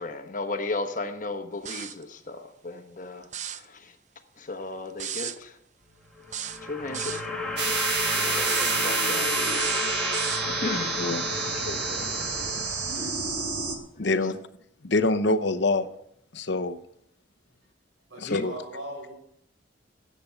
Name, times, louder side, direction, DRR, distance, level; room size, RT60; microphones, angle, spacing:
voice 1, 0.0-3.9 4.4-5.6 6.6-7.8 8.1-9.6 9.9-11.1 11.5-12.3 12.8-13.1 14.0-14.3 18.2-18.4, left 2 dB, 40° left, 1.1 m, -36 dB
sound 1, 1.7-2.0 3.2-3.7 5.0-5.4 6.3-7.3 8.4-8.8 9.5-10.5, right 9 dB, 35° right, 0.5 m, -34 dB
sound 2, 6.1-13.3, left 2 dB, 5° left, 1.8 m, -32 dB
sound 3, 7.6-13.8, right 5 dB, 55° right, 1.8 m, -29 dB
voice 2, 14.0-14.4 14.8-15.9 16.3-16.8 18.2-18.5, left 2 dB, 60° left, 0.8 m, -25 dB
voice 3, 18.1-19.1, right 1 dB, 80° right, 6.2 m, -39 dB
14.0 x 8.5 x 5.7 m
head